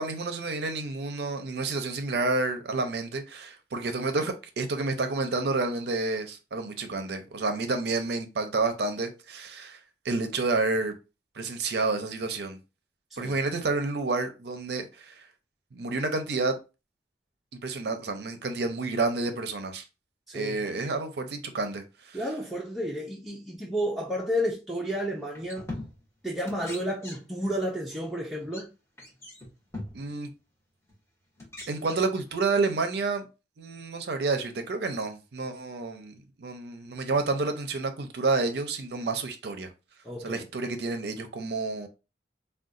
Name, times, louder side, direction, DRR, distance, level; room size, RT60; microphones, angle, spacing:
voice 1, 0.0-9.8 10.0-10.9 11.4-12.6 13.2-15.1 15.7-16.6 17.6-19.8 20.3-22.2 29.9-30.3 31.7-33.3 33.6-39.7 40.2-41.9, right 3 dB, 60° right, 0.5 m, -29 dB
voice 2, 20.3-20.6 22.1-25.7 26.2-28.7 40.0-40.4, equal, ahead, 0.5 m, -31 dB
sound 1, 24.9-25.0 25.3-26.2 26.5-27.5 27.8-28.0 28.4-28.6 29.0-30.1 30.9-31.0 31.4-32.6, left 1 dB, 15° left, 1.0 m, -42 dB
3.7 x 2.2 x 2.5 m
head